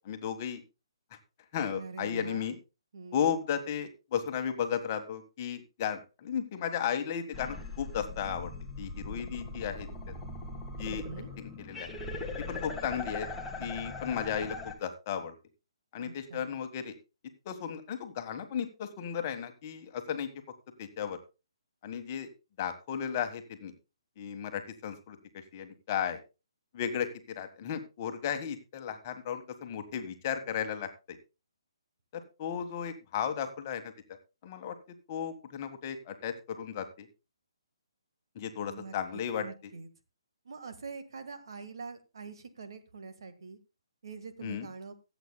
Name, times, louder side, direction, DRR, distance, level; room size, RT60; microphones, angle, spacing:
voice 1, 0.0-0.6 1.5-2.6 3.1-8.5 8.8-9.9 10.8-11.0 11.4-11.9 12.5-13.3 13.6-15.3 15.9-16.9 17.4-20.3 20.8-21.2 21.8-22.3 22.6-23.7 24.2-25.2 25.5-26.2 26.7-31.2 32.1-33.8 34.4-34.8 35.1-37.1 38.3-39.4 44.4-44.7, left 8 dB, 30° left, 7 dB, 1.4 m, -34 dB
voice 2, 1.7-2.6 2.9-3.4 10.8-11.3 16.0-16.6 38.6-39.9 40.5-43.6 44.0-44.9, right 4 dB, 55° right, 7 dB, 1.6 m, -45 dB
sound 1, 7.3-14.7, left 3 dB, 5° left, 1.5 m, -40 dB
24.0 x 8.1 x 2.2 m, 0.29 s
figure-of-eight pair, 135°, 3 cm